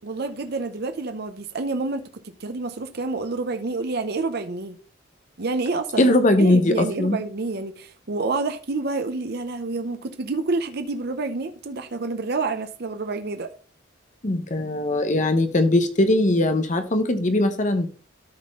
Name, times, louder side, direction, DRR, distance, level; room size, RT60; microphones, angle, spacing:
voice 1, 0.0-2.1 2.4-4.8 5.4-6.1 6.4-13.5, right 3 dB, 55° right, 0.7 m, -28 dB
voice 2, 6.0-7.2 14.2-17.9, left 1 dB, 40° left, 0.9 m, -20 dB
13.0 x 4.3 x 3.7 m
head